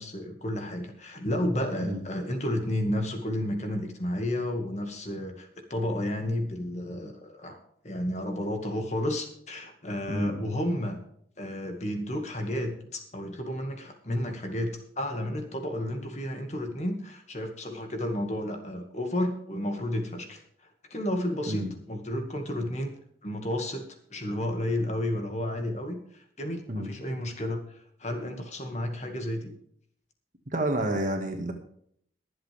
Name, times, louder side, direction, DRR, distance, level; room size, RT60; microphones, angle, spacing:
voice 1, 0.0-7.6 7.8-11.0 11.4-20.4 20.9-22.9 23.2-23.8 24.1-27.6 28.0-29.5, left 1 dB, 40° left, 5 dB, 2.1 m, -32 dB
voice 2, 10.1-10.5 21.5-21.7 26.7-26.9 30.5-31.5, right 1 dB, 45° right, 3 dB, 2.0 m, -29 dB
22.5 x 7.8 x 3.5 m, 0.66 s
head